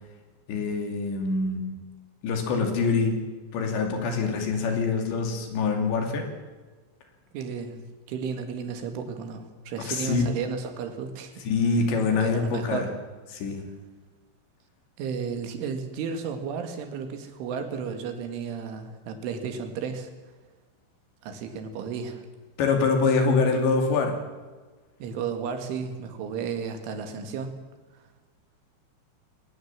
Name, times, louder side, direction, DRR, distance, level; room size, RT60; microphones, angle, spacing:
voice 1, 0.5-1.8 2.2-3.2 3.5-6.3 9.8-10.2 11.4-12.9 13.3-13.6 22.6-24.2, left 4 dB, 70° left, 4 dB, 4.9 m, -25 dB
voice 2, 7.3-7.8 8.1-11.4 12.2-12.9 15.0-20.1 21.2-22.3 25.0-27.6, right 6 dB, 90° right, 7 dB, 4.6 m, -33 dB
22.0 x 19.0 x 7.5 m, 1.3 s
omnidirectional pair, 5.4 m